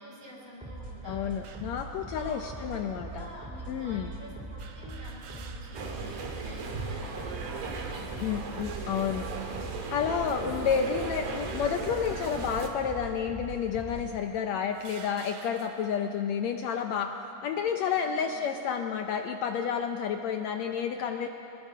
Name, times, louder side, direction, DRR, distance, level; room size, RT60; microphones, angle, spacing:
voice 1, 0.0-1.3 2.1-2.8 3.1-8.2 10.4-10.7 11.7-12.0 18.0-18.3, equal, 50° right, -4 dB, 6.1 m, -48 dB
sound 1, 0.6-14.2, right 2 dB, 5° right, 1.4 m, -42 dB
voice 2, 1.1-3.3 3.7-4.1 8.2-9.6 9.9-17.1 17.4-21.3, left 7 dB, 75° left, 5 dB, 1.8 m, -30 dB
sound 2, 1.4-1.8 2.7-2.8 4.6-6.1 6.5-6.6 7.7-8.2 8.8-9.1 10.1-10.9 11.5-12.0 12.9-13.0 13.9-14.0 14.7-16.0, right 7 dB, 65° right, 2.1 m, -51 dB
sound 3, 5.7-12.7, right 4 dB, 90° right, 3.4 m, -37 dB
24.5 x 20.5 x 5.6 m, 3.0 s
omnidirectional pair, 3.6 m